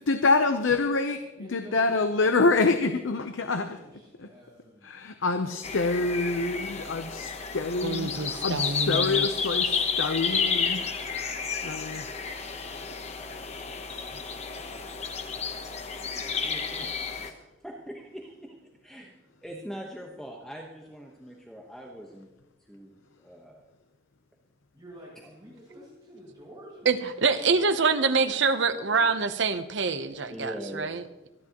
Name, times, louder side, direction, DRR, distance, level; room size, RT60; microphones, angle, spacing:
voice 1, 0.1-1.2 1.5-3.7 4.2-4.3 4.8-11.3 11.6-12.0, left 3 dB, 80° left, 8 dB, 0.7 m, -26 dB
voice 2, 1.4-2.5 3.1-5.6 24.7-28.3 28.5-29.1, equal, 20° right, -7 dB, 6.5 m, -50 dB
sound 1, 5.6-17.3, left 5 dB, 35° left, 1.0 m, -31 dB
voice 3, 7.8-9.3 26.8-31.0, right 4 dB, 65° right, 10 dB, 0.8 m, -26 dB
voice 4, 16.1-18.6 18.8-19.1 19.4-22.3 22.7-23.6 25.2-25.3 30.3-31.0, equal, 5° left, -1 dB, 1.1 m, -42 dB
26.0 x 11.0 x 3.0 m, 1.0 s
head